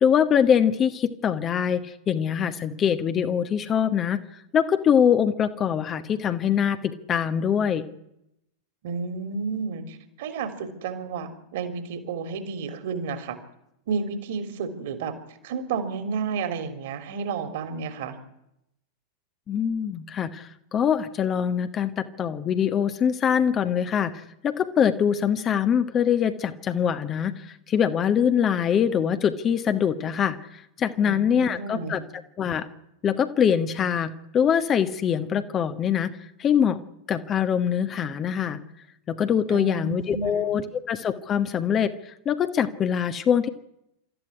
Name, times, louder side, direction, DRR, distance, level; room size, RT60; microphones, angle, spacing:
voice 1, 0.0-4.2 4.5-7.8 19.5-24.1 24.4-32.0 32.4-32.7 33.0-36.1 36.4-36.8 37.1-38.6 39.1-43.5, left 8 dB, 25° left, 9 dB, 1.4 m, -23 dB
voice 2, 8.8-13.4 13.9-15.1 15.4-18.2 31.0-32.1 39.5-40.6, right 5 dB, 55° right, 10 dB, 3.3 m, -31 dB
27.0 x 14.0 x 9.9 m, 0.84 s
figure-of-eight pair, 90°, 0 cm